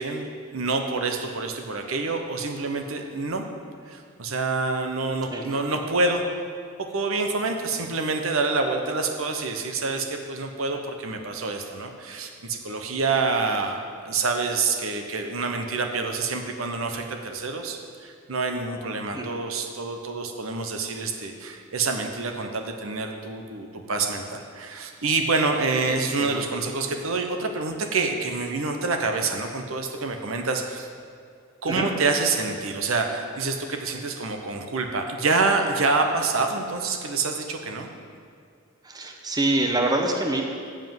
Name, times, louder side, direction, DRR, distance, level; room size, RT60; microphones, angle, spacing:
voice 1, 0.0-3.4 3.9-6.2 6.9-30.9 31.6-37.9, right 3 dB, 80° right, 4 dB, 0.9 m, -27 dB
voice 2, 25.9-26.4 31.7-31.9 38.8-40.4, right 2 dB, 20° right, 2 dB, 0.9 m, -26 dB
7.5 x 7.4 x 7.6 m, 2.3 s
head